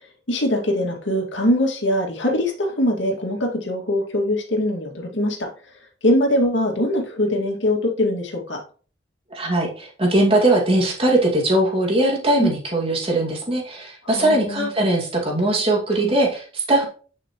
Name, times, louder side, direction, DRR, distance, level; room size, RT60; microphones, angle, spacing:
voice 1, 0.3-5.5 6.0-8.6 12.4-12.5 14.0-14.7 16.0-16.1, left 1 dB, 80° left, 1 dB, 2.2 m, -22 dB
voice 2, 9.3-16.9, right 1 dB, 30° right, -1 dB, 2.3 m, -20 dB
10.0 x 5.8 x 3.1 m, 0.40 s
head